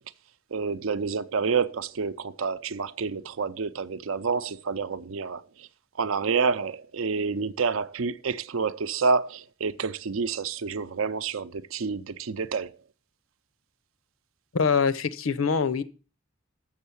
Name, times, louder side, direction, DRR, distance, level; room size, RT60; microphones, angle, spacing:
voice 1, 0.5-5.7 6.0-12.8, right 5 dB, 80° right, 0.6 m, -28 dB
voice 2, 14.5-15.8, left 5 dB, 80° left, 0.7 m, -24 dB
7.2 x 6.4 x 7.0 m
head